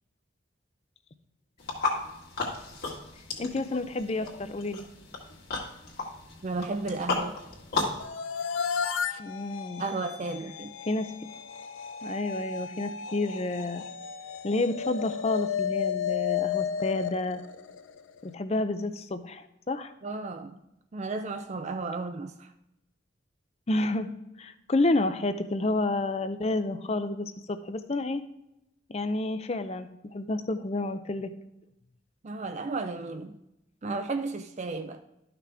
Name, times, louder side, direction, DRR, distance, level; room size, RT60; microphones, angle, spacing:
sound 1, 1.6-8.0, left 3 dB, 50° left, 2.0 m, -34 dB
voice 1, 3.4-4.8 9.2-9.8 10.9-11.3 12.0-13.8 14.4-17.4 18.2-19.9 23.7-24.1 24.4-28.2 28.9-31.3, left 2 dB, 30° left, 0.5 m, -30 dB
voice 2, 6.4-7.4 9.8-10.7 20.0-20.6 20.9-22.5 32.2-33.4 33.8-35.0, right 3 dB, 35° right, 0.4 m, -33 dB
sound 2, 8.0-18.2, left 7 dB, 85° left, 0.5 m, -33 dB
12.5 x 5.9 x 3.4 m
head